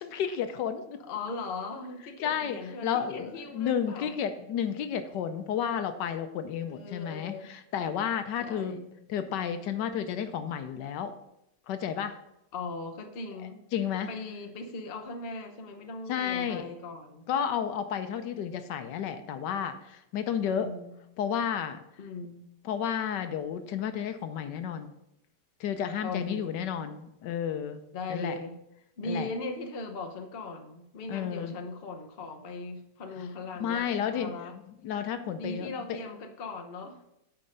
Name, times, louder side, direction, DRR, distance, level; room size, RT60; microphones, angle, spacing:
voice 1, 0.0-0.8 2.2-2.6 2.8-8.8 9.1-11.1 11.7-12.2 13.7-14.1 16.1-16.7 17.3-20.7 21.2-21.8 22.6-24.9 25.6-27.8 28.1-28.4 29.0-29.3 31.1-31.5 33.6-34.4 34.8-36.0, left 8 dB, 80° left, 9 dB, 1.3 m, -31 dB
voice 2, 1.0-4.2 6.7-7.5 8.4-8.9 12.5-13.6 14.1-17.3 20.5-20.9 22.0-22.5 26.0-26.6 27.9-28.6 29.0-34.5 35.3-37.0, left 3 dB, 40° left, 3 dB, 0.9 m, -39 dB
9.3 x 4.5 x 5.0 m, 0.83 s
omnidirectional pair, 1.9 m